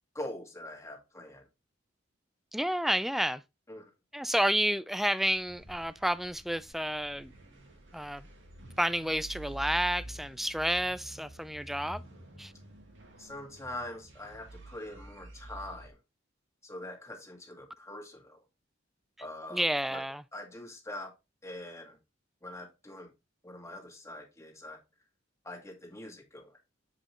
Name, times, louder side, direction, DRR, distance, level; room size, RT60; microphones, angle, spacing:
voice 1, 0.1-1.5 3.7-3.9 13.2-16.0 16.6-18.4 19.2-20.0 20.3-21.1 21.4-22.0 22.4-23.1 23.4-24.8 25.4-26.6, left 1 dB, 15° left, 1.9 m, -43 dB
voice 2, 2.5-3.4 4.1-7.3 7.9-8.3 8.8-12.0 12.4-12.5 19.5-20.2, equal, ahead, 0.3 m, -30 dB
sound 1, 5.3-15.9, right 1 dB, 75° right, 1.9 m, -49 dB
7.6 x 5.0 x 3.1 m
head